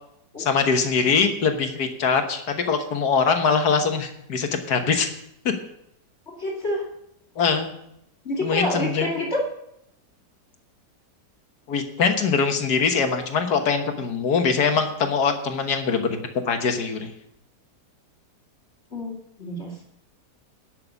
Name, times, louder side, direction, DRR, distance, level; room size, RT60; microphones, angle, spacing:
voice 1, 0.4-5.1 7.4-7.7 8.4-9.2 11.7-17.1, left 5 dB, 75° left, 6 dB, 1.8 m, -23 dB
voice 2, 6.3-6.8 8.2-9.5 18.9-19.8, left 1 dB, 40° left, -2 dB, 2.6 m, -28 dB
11.0 x 6.7 x 8.2 m, 0.77 s
omnidirectional pair, 1.8 m